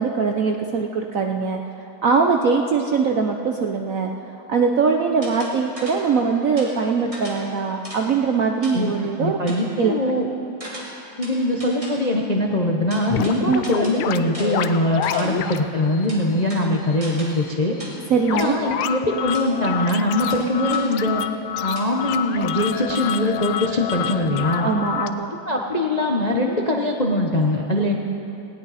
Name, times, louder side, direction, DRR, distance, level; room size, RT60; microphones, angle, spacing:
voice 1, 0.0-1.6 2.0-4.1 4.5-9.4 9.8-9.9 13.5-13.6 18.1-18.6 24.6-25.3, right 5 dB, 65° right, 2 dB, 0.8 m, -21 dB
sound 1, 5.2-6.2 6.6-8.2 8.6-9.0 9.5-9.7 10.6-12.2 12.9-15.5 16.1-17.5 17.8-18.1 18.4-18.6 19.3-19.5 20.3-21.0 21.8-21.9, right 1 dB, 15° right, 2.8 m, -39 dB
voice 2, 9.2-10.3 11.2-17.8 18.3-21.2 21.6-24.7 25.5-28.0, left 1 dB, 35° left, 0 dB, 0.6 m, -22 dB
sound 2, 13.1-15.6 15.9-16.1 16.4-16.5 16.9-17.0 17.4-17.5 17.8-18.0 18.2-25.1, left 10 dB, 85° left, 1.5 m, -28 dB
19.0 x 17.5 x 4.1 m, 2.8 s
omnidirectional pair, 2.2 m